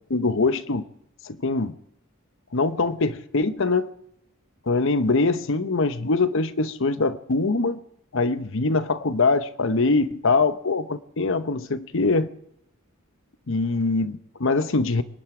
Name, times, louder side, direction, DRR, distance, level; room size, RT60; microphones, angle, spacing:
voice 1, 0.1-0.8 1.2-1.7 2.5-3.9 4.7-7.8 8.1-12.3 13.5-15.0, left 3 dB, 65° left, 0.9 m, -23 dB
24.5 x 11.0 x 4.9 m
head